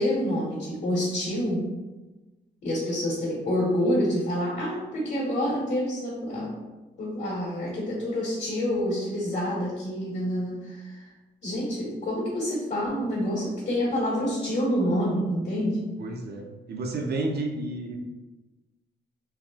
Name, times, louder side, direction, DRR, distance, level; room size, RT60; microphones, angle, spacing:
voice 1, 0.0-1.6 2.6-6.5 7.0-11.0 11.4-15.8, equal, 70° left, -6 dB, 1.3 m, -27 dB
voice 2, 16.0-18.0, right 2 dB, 60° right, 2 dB, 0.6 m, -31 dB
3.4 x 2.4 x 2.4 m, 1.1 s
cardioid pair, 65°, 19 cm